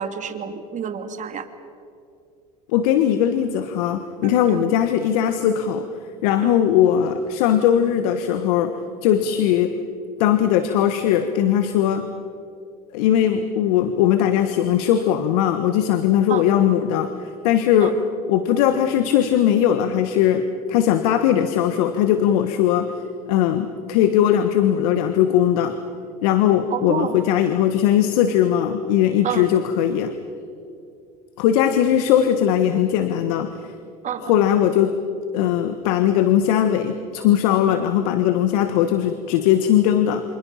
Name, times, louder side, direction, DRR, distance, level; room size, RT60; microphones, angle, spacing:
voice 1, 0.0-1.4 4.2-4.7 6.4-6.6 16.3-16.4 17.8-17.9 26.7-27.2 29.2-29.4 34.0-34.3, right 8 dB, 40° right, 8 dB, 2.5 m, -29 dB
voice 2, 2.7-5.9 6.2-8.7 9.0-9.7 10.2-12.1 12.9-18.0 18.3-22.9 23.3-25.8 26.2-30.1 31.4-33.5 34.2-35.0 35.3-40.2, left 10 dB, 75° left, 9 dB, 1.4 m, -19 dB
28.5 x 26.0 x 5.8 m, 2.5 s
hypercardioid pair, 90°, 19 cm